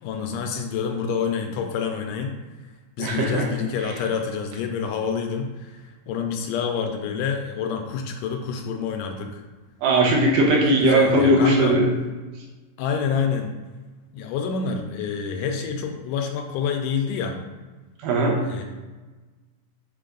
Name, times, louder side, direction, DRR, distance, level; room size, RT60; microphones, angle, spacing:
voice 1, 0.0-2.4 3.0-9.4 10.6-11.8 12.8-13.5 14.1-17.4 18.4-18.6, left 6 dB, 80° left, 4 dB, 2.0 m, -27 dB
voice 2, 3.0-3.5 9.8-11.9 18.0-18.4, right 1 dB, 75° right, -1 dB, 2.4 m, -19 dB
7.4 x 3.9 x 3.8 m, 1.2 s
omnidirectional pair, 3.9 m